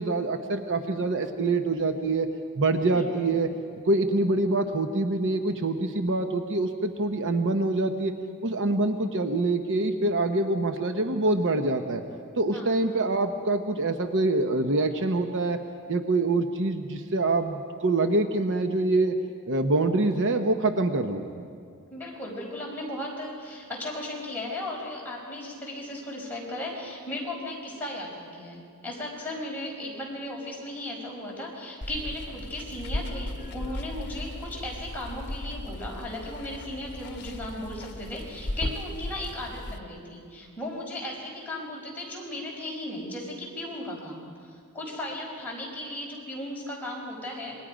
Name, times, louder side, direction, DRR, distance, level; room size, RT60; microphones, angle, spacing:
voice 1, 0.0-2.3 2.6-3.5 3.8-8.1 8.4-12.0 12.4-15.6 15.9-19.2 19.5-21.2, right 2 dB, 55° right, 6 dB, 0.9 m, -25 dB
voice 2, 2.9-3.3 12.4-12.7 21.9-47.5, left 1 dB, 10° left, -4 dB, 5.2 m, -36 dB
Water, 31.8-39.8, left 1 dB, 50° left, 1.3 m, -36 dB
27.0 x 22.0 x 5.1 m, 2.2 s
head